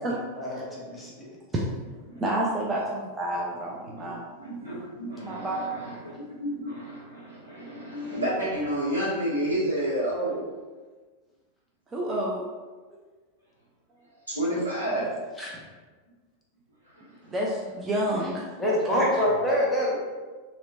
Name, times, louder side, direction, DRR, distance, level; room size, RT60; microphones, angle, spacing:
voice 1, 0.0-1.3 15.4-15.6 18.6-20.0, equal, 10° left, -5 dB, 0.8 m, -26 dB
voice 2, 2.2-4.2 5.2-5.8 11.9-12.4 17.3-18.5 19.0-19.1, right 1 dB, 20° right, -4 dB, 0.4 m, -29 dB
voice 3, 4.0-10.4 14.3-15.1 17.0-17.1, right 1 dB, 80° right, -8 dB, 1.3 m, -30 dB
3.0 x 2.9 x 2.5 m, 1.4 s
figure-of-eight pair, 90°, 0 cm